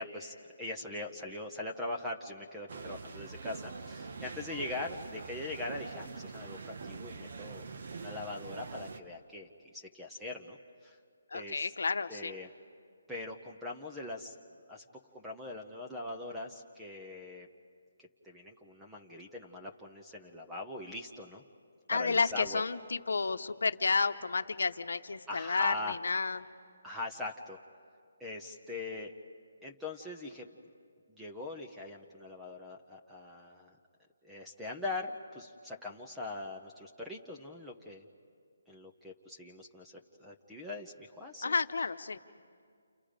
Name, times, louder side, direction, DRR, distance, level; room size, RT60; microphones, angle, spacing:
voice 1, 0.0-7.6 7.9-10.6 10.8-11.0 11.3-11.7 12.1-12.5 13.1-14.4 14.7-14.8 15.1-17.5 18.0-21.4 21.9-22.6 25.3-26.0 26.8-27.6 28.2-29.1 29.6-30.5 31.1-33.8 34.2-38.1 38.7-41.5, left 2 dB, 5° right, -1 dB, 0.8 m, -41 dB
sound 1, 2.7-9.0, right 4 dB, 55° right, 1.0 m, -44 dB
voice 2, 11.3-12.3 21.9-26.4 41.4-42.2, left 4 dB, 75° left, 9 dB, 0.9 m, -31 dB
29.0 x 29.0 x 5.1 m, 2.2 s
hypercardioid pair, 165°, 0 cm